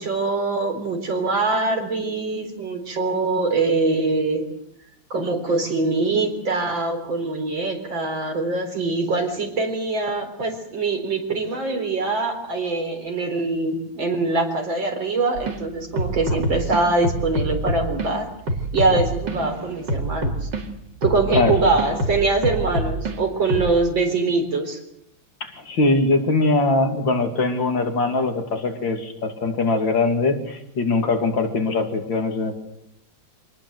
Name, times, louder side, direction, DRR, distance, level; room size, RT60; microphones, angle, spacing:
voice 1, 0.0-4.4 5.1-18.3 18.7-20.5 21.0-24.8, right 3 dB, 85° right, 4 dB, 4.8 m, -23 dB
sound 1, 15.4-15.6 16.0-18.1 18.5-20.6 21.0-23.1 23.5-23.7, right 1 dB, 70° right, 2.9 m, -26 dB
voice 2, 25.4-32.5, left 2 dB, 80° left, 4 dB, 3.4 m, -22 dB
25.5 x 19.0 x 7.9 m, 0.79 s
omnidirectional pair, 2.0 m